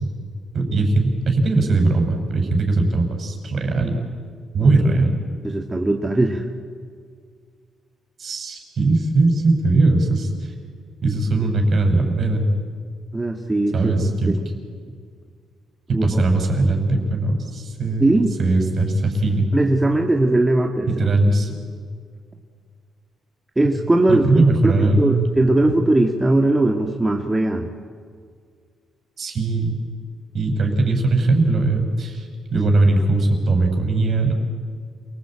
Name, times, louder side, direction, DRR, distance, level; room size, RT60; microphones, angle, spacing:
voice 1, 0.5-4.0 4.5-5.2 8.2-10.5 11.0-12.4 13.7-14.3 15.9-18.1 18.4-19.5 20.9-21.5 24.1-25.2 29.2-29.8 30.3-34.3, right 2 dB, 50° right, 3 dB, 5.7 m, -19 dB
voice 2, 4.6-5.0 5.4-6.5 13.1-13.9 14.3-14.4 15.9-16.2 18.0-18.4 19.5-21.1 23.6-27.7, right 2 dB, 15° right, 2 dB, 1.9 m, -19 dB
28.0 x 19.0 x 8.9 m, 2.1 s
cardioid pair, 90°, 0 cm